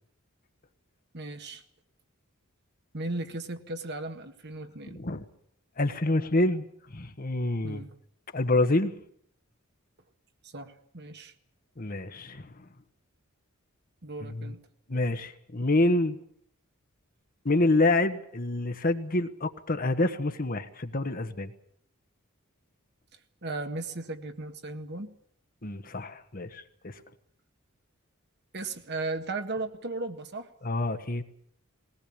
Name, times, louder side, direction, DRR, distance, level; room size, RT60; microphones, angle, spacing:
voice 1, 1.1-1.6 2.9-5.0 7.6-7.9 10.4-11.3 14.0-14.6 23.4-25.1 28.5-30.5, right 2 dB, 50° right, 7 dB, 1.7 m, -36 dB
voice 2, 4.9-5.2 5.8-6.7 6.9-7.8 8.3-8.9 11.8-12.5 14.2-14.5 14.9-16.2 17.4-21.5 25.6-27.0 30.6-31.2, left 2 dB, 40° left, 9 dB, 1.3 m, -27 dB
20.5 x 18.5 x 8.8 m, 0.67 s
head